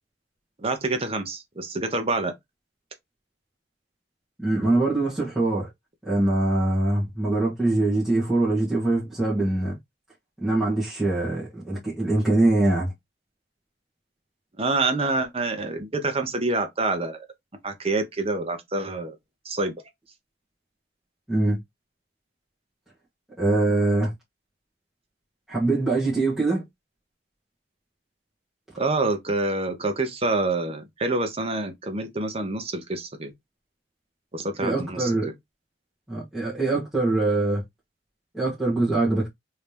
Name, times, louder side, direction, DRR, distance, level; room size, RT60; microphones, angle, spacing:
voice 1, 0.6-2.3 14.6-17.3 17.6-19.2 19.4-19.7 28.8-33.3 34.3-35.1, right 2 dB, 30° right, 0.8 m, -27 dB
voice 2, 4.4-5.7 6.0-9.8 10.4-12.9 21.3-21.6 23.4-24.1 25.5-26.7 34.6-35.3 36.1-37.6 38.3-39.3, right 2 dB, ahead, 1.4 m, -23 dB
3.2 x 2.8 x 3.3 m
head